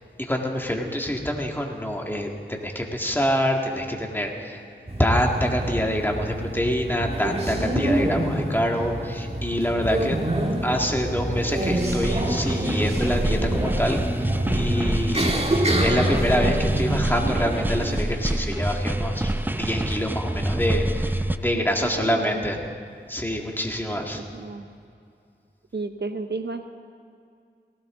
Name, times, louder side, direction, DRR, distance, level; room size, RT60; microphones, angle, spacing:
voice 1, 0.2-4.6 5.0-10.2 10.6-15.3 15.8-22.6 23.1-24.2, equal, 10° left, 1 dB, 2.0 m, -26 dB
sound 1, 4.9-18.0, right 1 dB, 30° right, 1.9 m, -27 dB
sound 2, 11.8-21.4, right 1 dB, 10° right, 0.5 m, -26 dB
voice 2, 21.5-22.4 23.9-24.7 25.7-26.7, right 3 dB, 60° right, 7 dB, 0.8 m, -33 dB
18.5 x 17.0 x 3.8 m, 2.5 s
wide cardioid pair, 45°, 20 cm